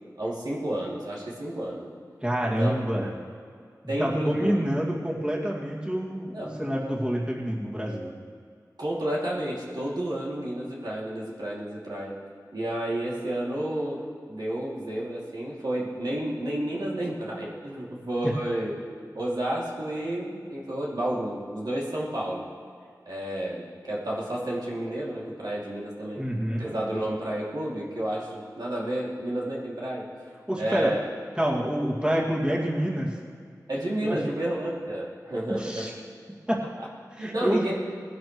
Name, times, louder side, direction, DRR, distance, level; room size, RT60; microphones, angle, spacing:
voice 1, 0.2-1.9 2.4-2.7 3.9-4.6 6.3-6.5 8.8-12.1 12.5-14.0 14.3-18.7 19.1-22.5 23.1-26.2 26.6-30.1 30.6-31.1 33.7-35.9 37.2-37.8, right 1 dB, 85° right, -6 dB, 2.7 m, -31 dB
voice 2, 2.2-3.1 4.0-8.1 18.2-18.3 26.2-26.7 30.5-31.0 31.4-33.1 34.0-34.2 35.5-35.9 36.5-36.6 37.2-37.7, equal, 15° right, -4 dB, 2.3 m, -27 dB
19.5 x 11.0 x 3.2 m, 2.2 s
wide cardioid pair, 55°, 7 cm